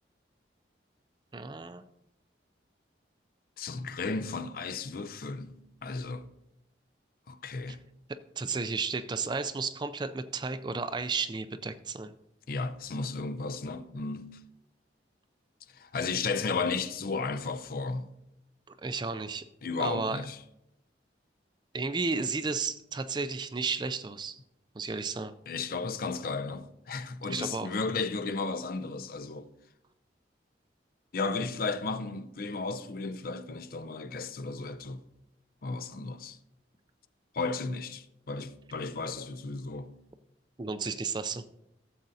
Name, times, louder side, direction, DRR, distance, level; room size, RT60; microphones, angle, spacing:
voice 1, 1.3-1.8 7.7-7.8 8.4-12.1 18.7-19.4 19.8-20.2 21.7-24.4 24.8-25.3 27.3-27.7 40.6-41.4, right 4 dB, 25° right, 0.4 m, -33 dB
voice 2, 3.6-6.3 7.3-7.8 12.5-14.4 15.7-18.1 19.6-20.4 25.5-29.5 31.1-35.0 35.6-36.4 37.3-39.9, left 4 dB, 50° left, 0.5 m, -34 dB
16.0 x 7.5 x 2.7 m
head